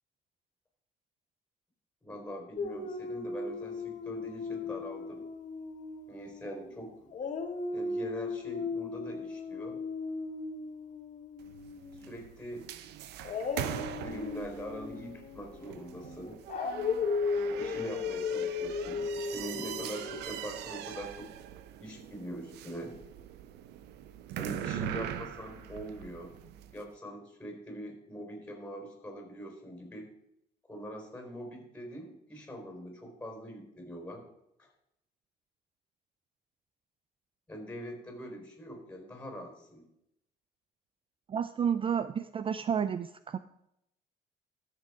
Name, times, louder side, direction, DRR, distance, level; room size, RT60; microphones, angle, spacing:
voice 1, 2.0-5.2 6.1-7.1 7.7-9.8 11.9-12.7 13.7-16.4 17.3-21.3 21.8-23.0 24.4-26.3 26.7-30.1 30.7-34.2 34.6-34.7 37.5-39.8, equal, 10° left, 2 dB, 4.3 m, -43 dB
Dog, 2.6-6.7 7.1-12.1 13.2-20.2, left 4 dB, 45° left, 1.4 m, -36 dB
sound 1, 11.4-26.8, right 10 dB, 80° right, 0.8 m, -42 dB
voice 2, 41.3-43.4, right 7 dB, 30° right, 12 dB, 0.4 m, -31 dB
13.5 x 6.7 x 4.9 m, 0.81 s
cardioid pair, 110°, 17 cm